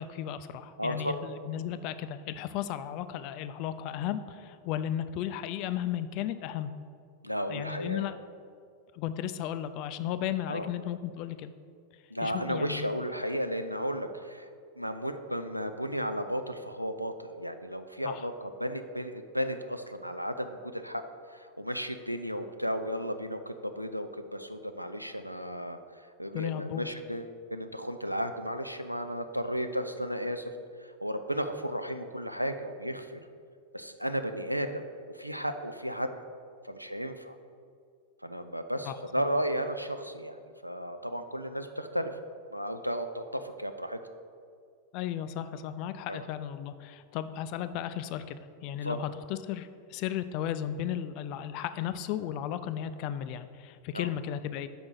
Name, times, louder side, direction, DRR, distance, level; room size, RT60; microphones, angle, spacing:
voice 1, 0.0-6.7 7.5-8.2 8.9-11.5 12.2-12.9 18.0-18.2 26.3-26.9 38.8-39.0 44.9-54.7, left 10 dB, 45° left, 12 dB, 0.3 m, -35 dB
voice 2, 0.8-1.2 7.2-8.1 10.5-10.7 12.1-14.5 14.8-18.3 18.6-21.0 21.3-25.8 26.2-30.5 31.0-33.2 33.7-34.8 35.1-36.1 36.6-37.3 38.2-42.1 42.5-44.0 46.1-46.2 48.8-49.0 53.9-54.1, equal, 90° right, 8 dB, 0.4 m, -34 dB
5.1 x 4.9 x 6.0 m, 2.3 s
figure-of-eight pair, 90°, 0 cm